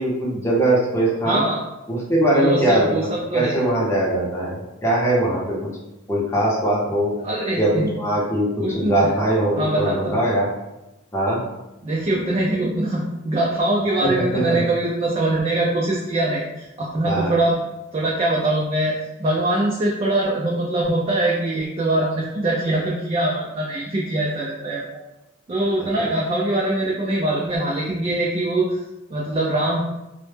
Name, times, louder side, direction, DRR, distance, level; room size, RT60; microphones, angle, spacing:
voice 1, 0.0-1.4 1.9-3.1 3.3-5.7 6.1-7.1 7.6-10.5 11.1-11.4 14.0-14.6 17.0-17.3, right 1 dB, 15° left, -5 dB, 0.6 m, -21 dB
voice 2, 1.2-1.6 2.3-3.6 7.2-7.9 8.6-9.1 9.5-10.2 11.8-17.6 17.9-24.8 25.5-28.8 29.1-29.8, right 1 dB, 30° right, -4 dB, 0.3 m, -23 dB
2.0 x 2.0 x 3.1 m, 0.95 s
head